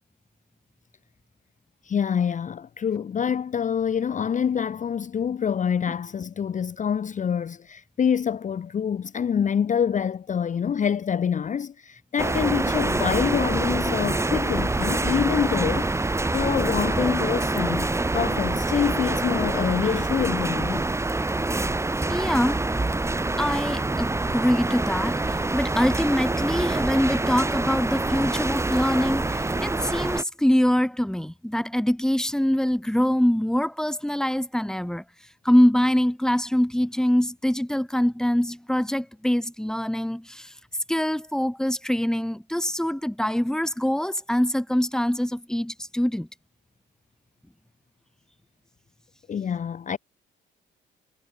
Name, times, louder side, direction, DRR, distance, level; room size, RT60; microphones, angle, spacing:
voice 1, 1.8-20.8 49.3-50.0, left 7 dB, 40° left, 0.7 m, -26 dB
sound 1, 12.2-30.2, right 2 dB, 15° right, 1.4 m, -26 dB
voice 2, 22.1-22.6 23.4-35.0 35.4-40.5 40.9-46.3, equal, 5° left, 2.4 m, -24 dB
cardioid pair, 90°, 20 cm